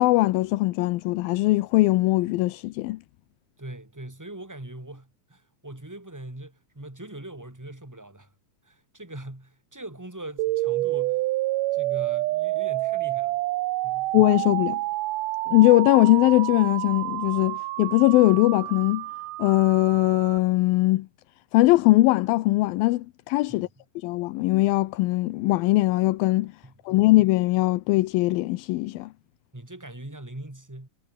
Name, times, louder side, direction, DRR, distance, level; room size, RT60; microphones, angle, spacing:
voice 1, 0.0-3.0 14.1-14.8 15.5-19.1 19.4-21.1 21.5-23.7 24.0-26.5 26.9-29.1, left 19 dB, 80° left, 2.4 m, -21 dB
voice 2, 3.6-8.3 8.6-11.2 11.7-13.4 13.8-14.1 23.5-23.7 26.6-27.0 29.5-30.9, right 1 dB, 5° right, 1.4 m, -41 dB
sound 1, 10.4-20.4, right 18 dB, 80° right, 1.9 m, -28 dB
omnidirectional pair, 4.4 m